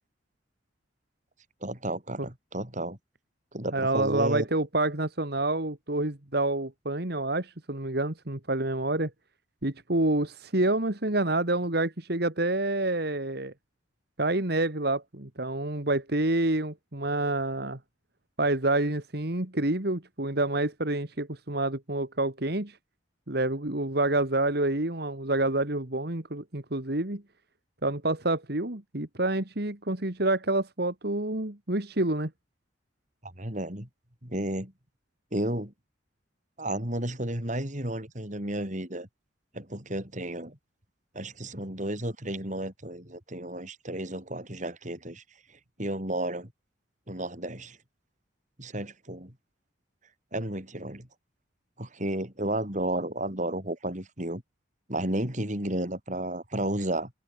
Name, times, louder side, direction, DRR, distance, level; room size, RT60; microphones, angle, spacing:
voice 1, 1.6-3.0 3.5-4.5 33.2-33.9 34.2-34.7 35.3-35.7 36.6-39.1 39.5-40.6 41.1-45.2 45.8-46.5 47.1-47.8 48.6-49.3 50.3-51.1 51.8-54.4 54.9-57.1, right 1 dB, 40° right, 5.1 m, -32 dB
voice 2, 3.7-9.1 9.6-13.5 14.2-17.8 18.4-22.8 23.3-27.2 27.8-32.3, right 2 dB, 55° right, 2.3 m, -28 dB
head